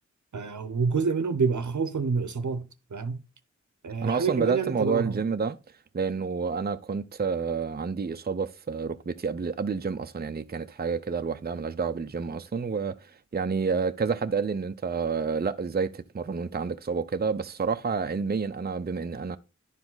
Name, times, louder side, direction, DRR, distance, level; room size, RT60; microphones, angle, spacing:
voice 1, 0.3-3.2 3.8-5.2, right 5 dB, 70° right, 0.8 m, -28 dB
voice 2, 4.0-5.6 5.9-19.4, right 5 dB, 30° right, 0.5 m, -29 dB
10.5 x 4.9 x 3.8 m
wide cardioid pair, 50°, 30 cm